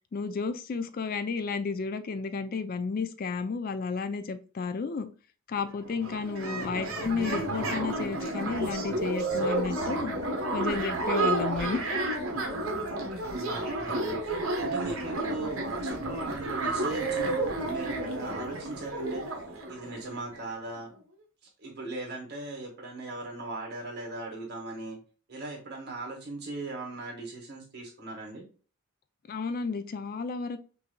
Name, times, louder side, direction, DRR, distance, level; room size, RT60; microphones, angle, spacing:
voice 1, 0.1-5.1 5.5-10.1 10.5-11.8 29.3-30.6, left 4 dB, 45° left, 0.3 m, -32 dB
sound 1, 5.5-5.6 5.8-20.4, right 2 dB, 70° right, 1.0 m, -31 dB
voice 2, 6.4-6.9 11.5-11.9 13.2-19.2 19.7-20.9 21.6-25.0 25.3-28.4, right 2 dB, 50° right, 1.6 m, -39 dB
5.7 x 2.6 x 2.2 m
head